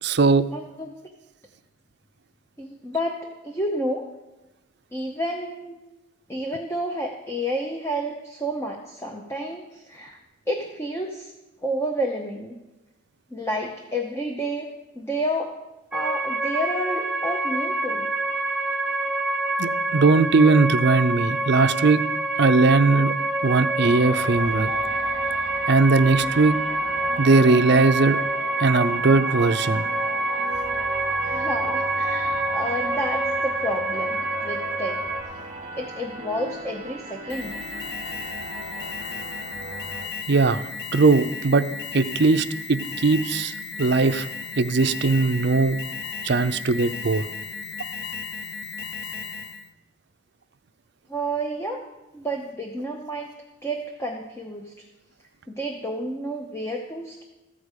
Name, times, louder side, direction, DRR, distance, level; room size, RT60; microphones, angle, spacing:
voice 1, 0.0-0.4 19.6-22.0 22.4-23.1 23.4-24.7 25.7-26.6 27.2-28.2 28.6-29.9 40.3-40.6 40.9-41.7 41.9-44.3 44.6-45.8 46.2-47.2, right 3 dB, 55° right, 11 dB, 0.5 m, -19 dB
voice 2, 0.5-0.9 2.6-3.2 3.4-4.1 4.9-5.8 6.3-10.2 10.5-11.3 11.6-12.5 13.3-14.7 14.9-15.5 15.9-18.1 31.2-35.0 35.8-37.5 51.1-51.8 52.1-53.3 53.6-54.8 55.5-57.2, equal, 15° left, 2 dB, 0.7 m, -30 dB
sound 1, 15.9-35.2, right 2 dB, 5° right, 1.0 m, -26 dB
sound 2, 23.8-40.1, right 1 dB, 30° right, 1.1 m, -37 dB
Alarm, 37.3-49.7, left 5 dB, 50° left, 0.6 m, -35 dB
14.5 x 5.0 x 8.2 m, 1.1 s
head